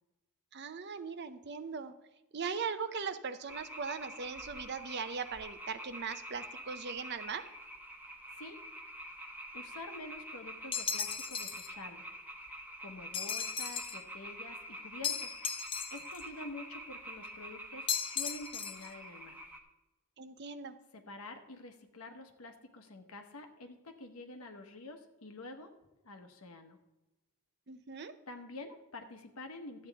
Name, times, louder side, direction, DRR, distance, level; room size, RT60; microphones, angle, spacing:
voice 1, 0.5-1.9 2.3-7.4 20.2-20.8 27.7-28.1, right 5 dB, 50° right, 11 dB, 0.6 m, -39 dB
sound 1, 3.5-19.6, right 1 dB, 10° right, 1.0 m, -47 dB
voice 2, 9.5-12.1 12.8-15.6 15.9-19.4 20.9-25.7 26.0-26.8 28.3-29.9, left 2 dB, 85° left, 6 dB, 1.2 m, -48 dB
sound 2, 10.7-11.7 13.1-14.0 15.0-16.2 17.9-18.9, left 7 dB, 25° left, 0.5 m, -36 dB
13.0 x 8.5 x 3.5 m, 1.0 s
head